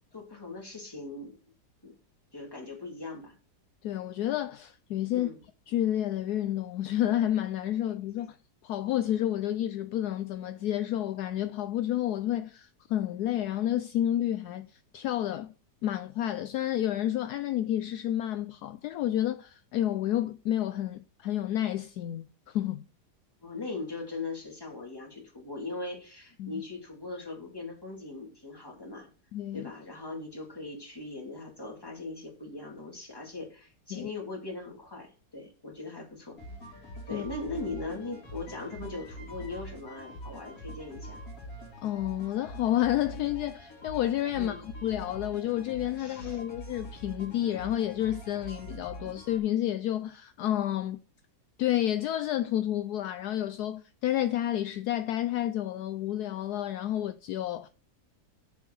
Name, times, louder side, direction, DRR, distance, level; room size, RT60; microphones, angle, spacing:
voice 1, 0.1-1.4 1.8-2.0 2.3-3.3 5.1-5.4 23.4-29.1 29.5-36.4 37.1-41.2 44.4-44.6 46.0-46.4, left 3 dB, 15° left, 2.5 m, -40 dB
voice 2, 3.8-5.3 5.7-8.4 8.6-15.5 15.8-22.8 26.4-26.6 29.3-29.7 33.9-34.1 37.1-37.3 41.8-51.0 51.6-57.7, left 12 dB, 70° left, 1.1 m, -30 dB
sound 1, 36.4-49.4, equal, 55° left, 3.1 m, -44 dB
7.2 x 5.3 x 6.2 m
omnidirectional pair, 1.8 m